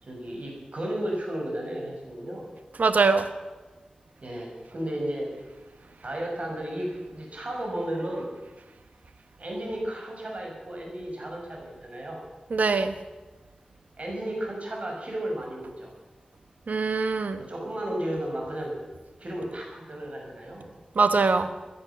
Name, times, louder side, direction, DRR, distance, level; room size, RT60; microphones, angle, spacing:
voice 1, 0.1-2.4 4.2-5.3 6.0-8.3 9.4-12.2 14.0-15.9 17.4-18.8 19.2-20.7, right 1 dB, 55° right, -1 dB, 6.5 m, -33 dB
voice 2, 2.8-3.3 12.5-12.9 16.7-17.4 21.0-21.5, right 4 dB, 85° right, 10 dB, 1.2 m, -22 dB
18.5 x 11.0 x 7.2 m, 1.2 s
cardioid pair, 45°, 3 cm